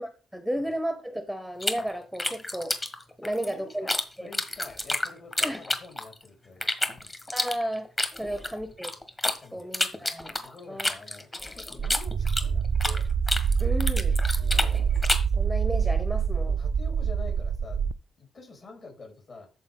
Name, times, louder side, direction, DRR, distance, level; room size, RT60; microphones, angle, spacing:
voice 1, 0.0-2.8 3.2-3.9 4.2-4.3 5.4-5.6 7.3-7.9 8.2-8.9 9.5-10.4 10.7-10.9 13.6-14.2 15.4-16.6, equal, ahead, 8 dB, 1.0 m, -33 dB
sound 1, 1.6-4.0 4.3-6.2 6.6-9.4 9.7-13.0 13.3-15.3, left 1 dB, 20° left, 1.6 m, -29 dB
voice 2, 3.2-7.1 8.2-8.3 9.4-10.1 10.4-13.1 14.4-14.7 16.5-19.5, left 3 dB, 45° left, 1 dB, 4.5 m, -47 dB
sound 2, 11.8-17.9, right 6 dB, 50° right, 0.4 m, -26 dB
13.5 x 4.6 x 3.8 m, 0.34 s
cardioid pair, 105°, 0 cm